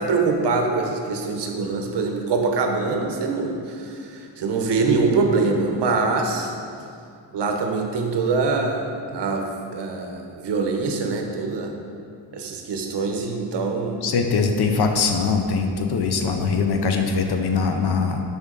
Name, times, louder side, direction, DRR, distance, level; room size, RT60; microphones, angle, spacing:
voice 1, 0.0-6.5 7.3-11.7 12.3-14.0, right 4 dB, 65° right, 3 dB, 0.9 m, -24 dB
voice 2, 14.0-18.2, left 4 dB, 60° left, 5 dB, 0.7 m, -22 dB
7.1 x 5.3 x 3.8 m, 2.4 s
wide cardioid pair, 125°, 44 cm